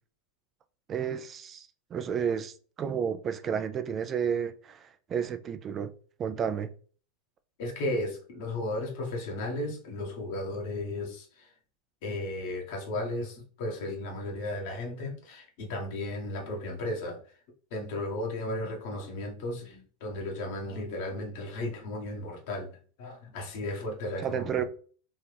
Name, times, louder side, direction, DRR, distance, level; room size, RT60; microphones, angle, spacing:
voice 1, 0.9-5.9 6.2-6.7 24.2-24.6, right 7 dB, 35° right, 0.4 m, -31 dB
voice 2, 7.6-11.5 12.0-17.4 17.7-24.6, left 1 dB, 65° left, 1.4 m, -35 dB
3.6 x 2.8 x 3.4 m
hypercardioid pair, 95°, 0 cm